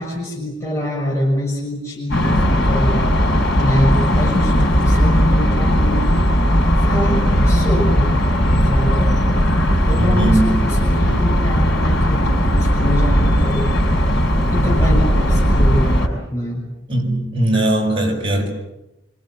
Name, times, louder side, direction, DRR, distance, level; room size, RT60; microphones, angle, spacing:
voice 1, 0.0-3.0 3.6-8.1 8.5-9.2 9.9-13.8 14.5-15.8 16.3-16.7, left 1 dB, 15° left, -4 dB, 6.7 m, -25 dB
sound 1, 2.1-16.1, equal, 60° left, 6.5 m, -16 dB
voice 2, 10.0-10.6 16.9-18.5, right 1 dB, 30° right, 0 dB, 6.9 m, -19 dB
27.0 x 25.5 x 7.7 m, 0.91 s
head